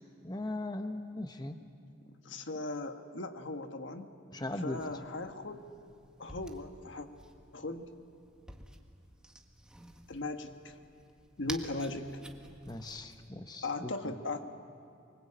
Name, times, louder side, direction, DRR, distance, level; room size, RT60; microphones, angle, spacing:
voice 1, 0.2-1.6 4.3-4.8 12.6-14.1, left 2 dB, 20° left, 6 dB, 1.0 m, -39 dB
voice 2, 2.2-4.1 4.6-5.6 6.2-7.1 7.5-7.9 10.1-10.8 11.4-12.1 13.6-14.4, left 2 dB, 65° left, 6 dB, 1.5 m, -38 dB
sound 1, 4.7-13.3, right 1 dB, 5° right, 1.6 m, -51 dB
25.5 x 24.0 x 8.7 m, 2.4 s
head